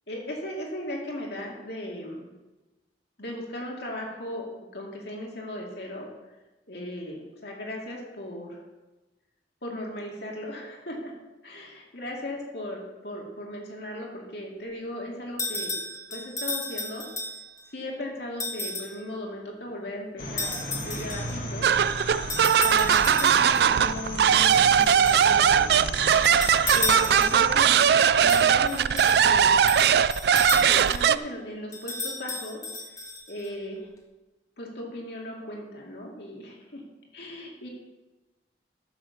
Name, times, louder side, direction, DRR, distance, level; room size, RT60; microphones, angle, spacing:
voice 1, 0.1-2.3 3.2-6.1 6.7-8.6 9.6-11.1 11.4-17.1 17.7-21.7 22.6-25.7 26.7-29.6 30.5-32.6 33.3-33.9 34.6-36.8 37.1-37.7, left 1 dB, 65° left, -1 dB, 2.3 m, -37 dB
sound 1, 15.4-17.6 18.4-19.0 20.4-21.4 22.3-23.7 24.5-25.3 26.1-27.5 28.3-31.1 31.7-33.5, left 2 dB, 20° left, 1.5 m, -33 dB
sound 2, 20.2-27.6, left 1 dB, 50° left, 1.8 m, -36 dB
sound 3, 21.6-31.2, right 8 dB, 60° right, 0.3 m, -20 dB
10.5 x 6.8 x 6.9 m, 1.1 s
head